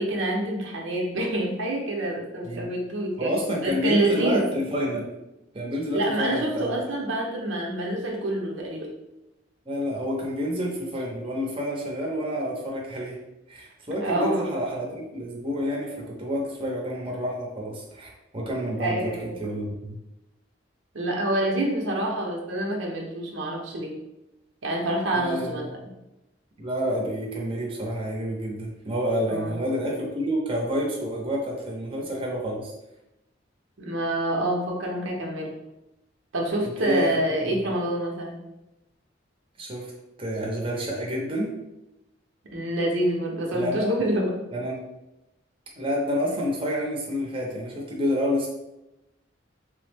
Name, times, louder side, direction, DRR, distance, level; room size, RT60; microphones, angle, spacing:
voice 1, 0.0-3.3 3.6-4.4 5.9-8.9 14.0-14.5 18.8-19.3 20.9-24.0 24.6-25.7 29.3-29.5 33.8-35.6 36.3-38.4 42.5-44.4, right 1 dB, 90° right, -1 dB, 0.7 m, -27 dB
voice 2, 3.2-5.1 5.5-6.7 9.7-13.2 13.5-20.0 25.1-25.7 26.6-32.7 36.8-37.1 37.4-37.6 39.6-39.9 40.2-41.5 43.5-43.9 44.5-44.8 45.8-48.5, equal, 30° right, -3 dB, 0.6 m, -28 dB
3.2 x 2.1 x 3.3 m, 0.93 s
head